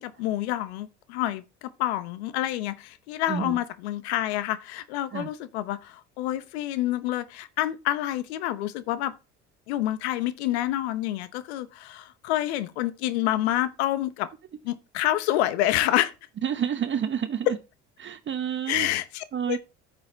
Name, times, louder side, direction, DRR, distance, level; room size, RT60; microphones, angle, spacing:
voice 1, 0.0-9.1 9.7-14.3 14.6-16.1 17.5-17.6 18.7-19.6, left 14 dB, 85° left, 0.9 m, -28 dB
voice 2, 3.3-3.6 5.1-5.3 16.4-17.5 18.0-18.9 19.3-19.6, right 8 dB, 35° right, 0.9 m, -29 dB
9.6 x 6.3 x 4.4 m
hypercardioid pair, 75°, 32 cm